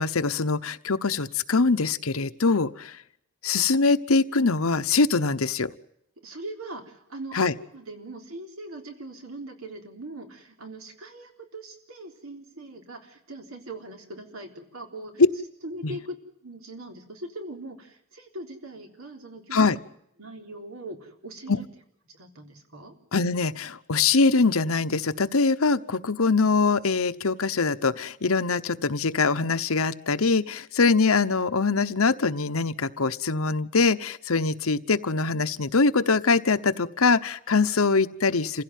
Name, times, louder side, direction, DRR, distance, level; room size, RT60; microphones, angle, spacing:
voice 1, 0.0-3.0 3.4-5.7 7.3-7.5 15.8-16.0 19.5-19.8 21.5-21.6 23.1-38.6, left 4 dB, 85° left, 12 dB, 1.0 m, -23 dB
voice 2, 6.2-15.2 15.6-19.7 20.2-21.7 22.1-22.9, right 1 dB, 85° right, 4 dB, 3.8 m, -41 dB
27.5 x 16.5 x 9.3 m, 0.74 s
head